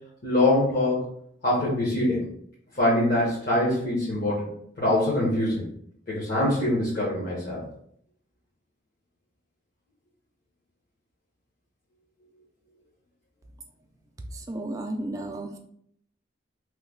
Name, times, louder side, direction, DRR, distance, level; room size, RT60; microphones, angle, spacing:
voice 1, 0.2-1.0 1.4-2.3 2.7-4.5 4.8-5.6 6.1-7.6, left 1 dB, 50° left, -8 dB, 1.0 m, -24 dB
voice 2, 14.5-15.6, right 1 dB, 20° right, 3 dB, 0.3 m, -33 dB
3.1 x 2.2 x 3.5 m, 0.67 s
head